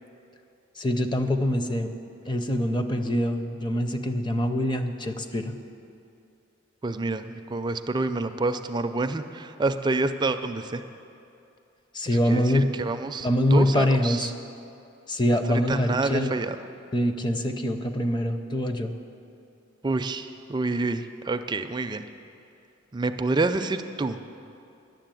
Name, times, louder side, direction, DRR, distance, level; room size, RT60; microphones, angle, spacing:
voice 1, 0.8-1.9 2.3-5.5 11.9-12.7 13.2-14.3 15.1-16.4 16.9-18.9, left 1 dB, 25° left, 7 dB, 0.6 m, -24 dB
voice 2, 6.8-10.8 12.1-14.3 15.5-16.6 19.8-22.1 22.9-24.2, right 3 dB, 20° right, 8 dB, 0.4 m, -28 dB
10.5 x 7.4 x 9.0 m, 2.7 s
head